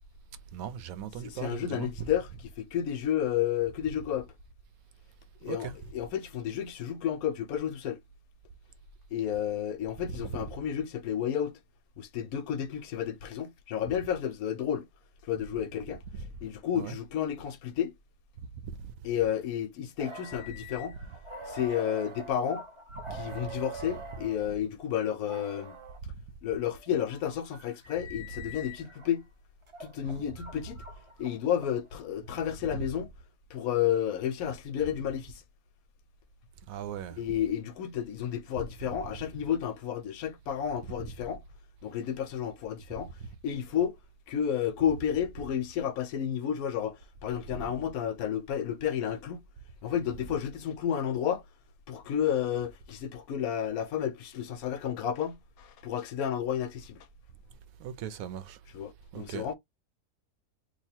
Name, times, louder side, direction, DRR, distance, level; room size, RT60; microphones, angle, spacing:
voice 1, 0.5-2.1 5.4-5.7 10.0-10.3 16.1-16.3 16.7-17.0 18.6-18.7 23.1-23.2 30.2-30.3 36.7-37.2 38.8-38.9 47.5-47.6 57.8-58.6 59.1-59.5, right 8 dB, 70° right, 1.0 m, -38 dB
voice 2, 1.2-2.3 2.6-4.3 5.4-8.0 9.1-11.6 12.0-14.9 15.2-16.0 16.4-17.9 19.0-21.0 21.5-22.6 23.1-25.8 26.4-29.3 29.8-30.8 31.2-33.1 33.5-35.4 37.2-41.4 41.8-43.1 43.4-44.0 44.3-49.4 49.8-51.4 51.9-57.1 58.7-59.5, left 9 dB, 70° left, 1.1 m, -31 dB
sound 1, 20.0-24.5 25.2-26.0 26.7-29.1 29.7-32.0, right 1 dB, 40° right, 0.4 m, -45 dB
3.0 x 2.4 x 4.2 m
omnidirectional pair, 1.7 m